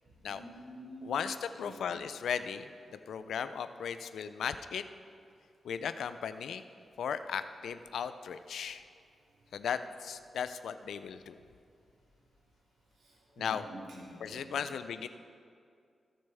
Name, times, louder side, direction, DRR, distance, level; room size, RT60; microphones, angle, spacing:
voice 1, 0.2-1.1 1.6-1.8 13.4-14.4, right 1 dB, 90° right, -5 dB, 2.3 m, -48 dB
voice 2, 1.0-4.8 5.6-6.6 7.0-8.8 9.5-11.4 13.4-13.7 14.2-15.1, left 7 dB, 90° left, 11 dB, 0.4 m, -36 dB
17.5 x 6.5 x 3.5 m, 2.3 s
cardioid pair, 80°, 0 cm